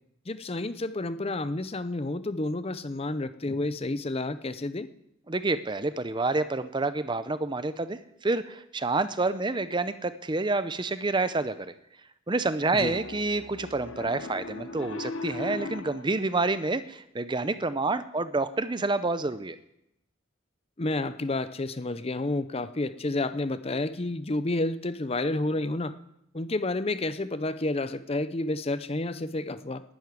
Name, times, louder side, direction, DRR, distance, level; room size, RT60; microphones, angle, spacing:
voice 1, 0.3-4.9 12.7-12.9 20.8-25.9 26.3-29.8, left 2 dB, 30° left, 13 dB, 0.6 m, -30 dB
voice 2, 5.3-11.7 12.3-19.6, right 3 dB, 25° right, 13 dB, 0.6 m, -28 dB
Piano, 12.7-16.1, left 3 dB, 75° left, 0.9 m, -38 dB
11.5 x 11.0 x 9.6 m, 0.82 s
head